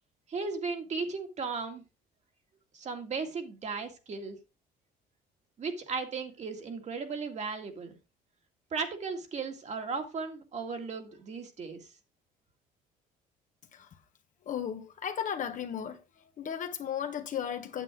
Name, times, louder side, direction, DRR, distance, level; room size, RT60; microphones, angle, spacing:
voice 1, 0.3-1.8 2.7-4.4 5.6-8.0 8.7-11.8, right 4 dB, 45° right, 2.0 m, -36 dB
voice 2, 14.5-16.0 16.4-17.8, left 8 dB, 50° left, 1.4 m, -35 dB
9.1 x 7.6 x 3.5 m
cardioid pair, 110°, 17 cm